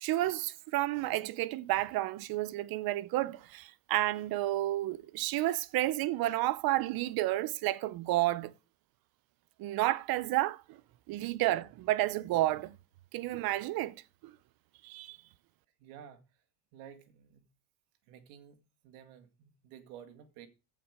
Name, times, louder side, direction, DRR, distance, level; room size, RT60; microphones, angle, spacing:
voice 1, 0.0-8.5 9.6-10.8 11.1-12.8 13.1-14.3 14.8-15.2, right 16 dB, 60° right, 0.8 m, -31 dB
voice 2, 15.8-16.2 16.7-17.4 18.1-18.6 18.8-20.5, right 9 dB, 85° right, 2.1 m, -52 dB
15.0 x 5.7 x 4.9 m
cardioid pair, 115°, 42 cm